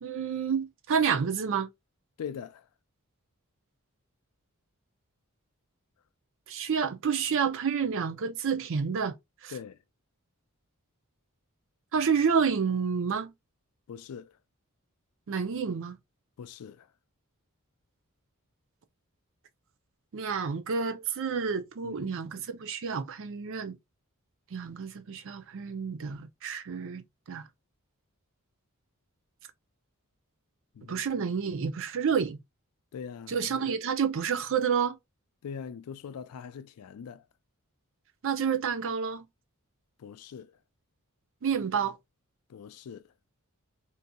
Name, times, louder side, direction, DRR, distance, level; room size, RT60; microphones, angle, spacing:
voice 1, 0.0-1.7 6.5-9.2 9.4-9.5 11.9-13.3 15.3-16.0 20.1-23.8 24.5-27.5 30.9-32.4 33.3-35.0 38.2-39.2 41.4-42.0, right 6 dB, 60° right, 0.5 m, -29 dB
voice 2, 2.2-2.7 9.5-9.8 13.9-14.3 16.4-16.9 21.8-22.2 30.7-31.0 32.9-33.7 35.4-37.2 40.0-40.5 42.5-43.0, left 7 dB, 85° left, 0.4 m, -42 dB
3.8 x 2.6 x 2.2 m
head